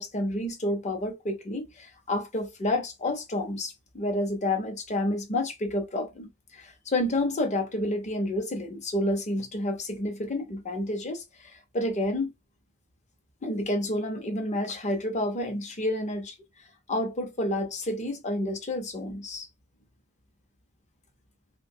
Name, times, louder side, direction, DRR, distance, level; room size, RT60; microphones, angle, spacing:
voice 1, 0.0-12.3 13.4-16.4 16.9-19.5, left 1 dB, 35° left, 0.7 m, -29 dB
2.7 x 2.2 x 2.6 m
head